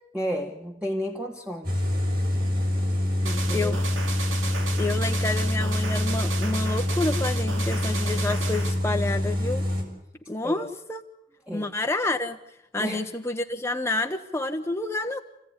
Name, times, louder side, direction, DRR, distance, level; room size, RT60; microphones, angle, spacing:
voice 1, 0.1-1.8 3.2-3.8 10.4-10.7 11.5-11.8 12.8-13.1, equal, 5° right, 1 dB, 1.5 m, -32 dB
sound 1, 1.6-9.8, left 1 dB, 50° right, 6.5 m, -26 dB
sound 2, 3.2-8.8, right 4 dB, 85° right, 2.9 m, -35 dB
voice 2, 4.8-9.6 10.3-11.0 11.5-12.4 12.7-15.2, left 2 dB, 15° left, 4 dB, 0.9 m, -29 dB
28.5 x 16.0 x 9.7 m, 0.86 s
head